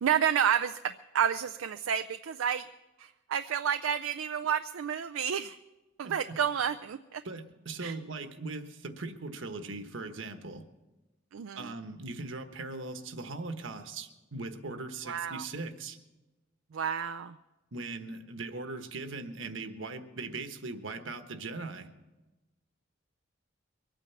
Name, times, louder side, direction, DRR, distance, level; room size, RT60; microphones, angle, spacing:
voice 1, 0.0-2.7 3.0-5.6 6.0-7.2 7.8-7.9 11.3-11.7 15.1-15.4 16.7-17.4, right 8 dB, 85° right, 9 dB, 0.4 m, -30 dB
voice 2, 6.0-6.4 7.2-10.6 11.6-16.0 17.7-21.9, right 3 dB, 70° right, 8 dB, 1.3 m, -40 dB
22.5 x 9.1 x 7.0 m, 1.1 s
head